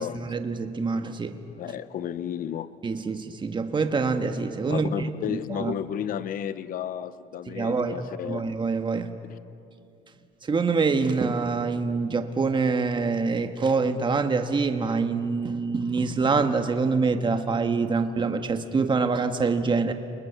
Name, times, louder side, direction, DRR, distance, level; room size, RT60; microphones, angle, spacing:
voice 1, 0.0-1.4 2.8-4.9 5.3-5.7 7.5-9.1 10.4-19.9, right 4 dB, 30° right, 7 dB, 1.5 m, -25 dB
voice 2, 1.6-2.7 4.7-8.4, left 9 dB, 55° left, 15 dB, 0.8 m, -32 dB
30.0 x 20.5 x 7.1 m, 2.6 s
cardioid pair, 110°, 17 cm